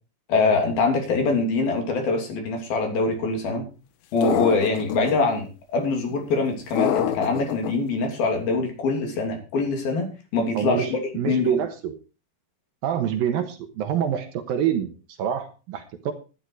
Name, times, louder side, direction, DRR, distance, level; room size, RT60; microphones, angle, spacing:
voice 1, 0.3-3.7 4.1-10.1 10.3-11.0 11.3-11.6, left 3 dB, 60° left, 3 dB, 4.8 m, -24 dB
sound 1, 4.2-5.1 6.8-7.7, left 11 dB, 85° left, 3.4 m, -25 dB
voice 2, 10.5-11.9 12.8-16.1, right 9 dB, 70° right, 7 dB, 2.7 m, -26 dB
13.0 x 11.0 x 4.7 m, 0.33 s
omnidirectional pair, 4.8 m